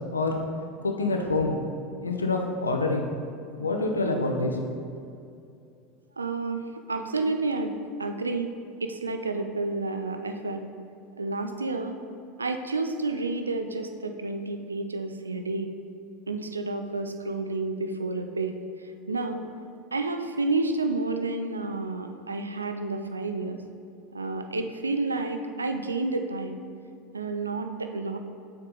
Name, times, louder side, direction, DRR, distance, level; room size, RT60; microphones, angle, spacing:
voice 1, 0.8-1.5 2.0-3.1 3.6-4.6, left 3 dB, 80° left, 2 dB, 0.6 m, -26 dB
voice 2, 6.2-8.5 8.8-10.6 11.2-12.0 12.4-15.7 16.3-18.6 19.1-19.5 19.9-23.6 24.1-26.6 27.1-28.2, right 3 dB, 80° right, 6 dB, 0.4 m, -30 dB
7.1 x 3.6 x 3.8 m, 2.5 s
figure-of-eight pair, 80°, 0 cm